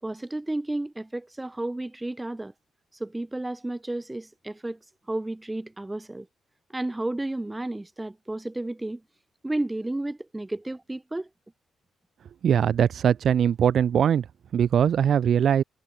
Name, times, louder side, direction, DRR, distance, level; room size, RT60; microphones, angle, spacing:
voice 1, 0.0-2.5 3.0-4.8 5.1-6.3 6.7-9.0 9.4-11.3, right 2 dB, 10° right, 6.8 m, -32 dB
voice 2, 12.4-14.2 14.5-15.6, right 8 dB, 60° right, 2.5 m, -21 dB
cardioid pair, 90°, 0 cm